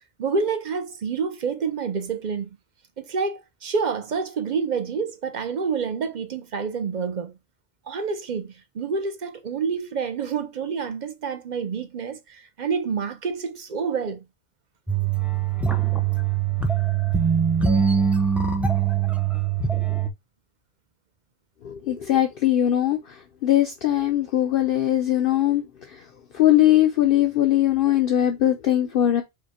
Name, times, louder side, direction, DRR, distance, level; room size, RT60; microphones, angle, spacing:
voice 1, 0.2-2.5 3.0-7.3 7.9-14.2, right 5 dB, 50° right, 0.7 m, -28 dB
sound 1, 14.9-20.1, right 7 dB, ahead, 0.4 m, -22 dB
voice 2, 21.6-23.0 23.4-25.6 26.3-29.2, left 12 dB, 60° left, 0.8 m, -20 dB
5.1 x 2.2 x 4.2 m
omnidirectional pair, 1.1 m